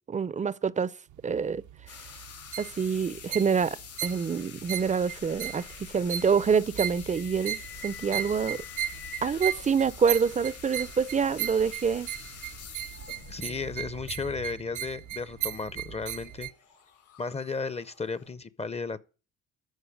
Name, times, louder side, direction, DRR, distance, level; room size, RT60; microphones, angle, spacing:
voice 1, 0.1-0.9 1.2-1.6 2.6-5.6 5.9-8.6 9.2-12.1, right 6 dB, 25° right, 0.5 m, -26 dB
sound 1, 1.1-16.5, right 11 dB, 75° right, 0.7 m, -37 dB
sound 2, 1.9-18.3, left 7 dB, 85° left, 4.8 m, -48 dB
sound 3, 5.1-14.1, left 8 dB, 50° left, 1.0 m, -49 dB
voice 2, 13.3-16.5 17.2-19.0, left 4 dB, 20° left, 0.6 m, -34 dB
13.0 x 4.6 x 8.5 m
cardioid pair, 90°, 30 cm